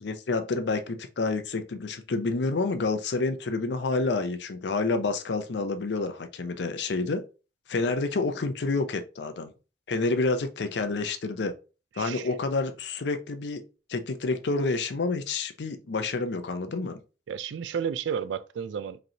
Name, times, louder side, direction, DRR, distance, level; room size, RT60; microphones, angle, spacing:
voice 1, 0.0-7.2 7.7-9.5 9.9-11.5 12.0-13.6 13.9-17.0, left 3 dB, 75° left, 0.5 m, -28 dB
voice 2, 12.0-12.3 17.3-19.0, right 7 dB, 90° right, 0.3 m, -32 dB
5.0 x 3.1 x 2.8 m
head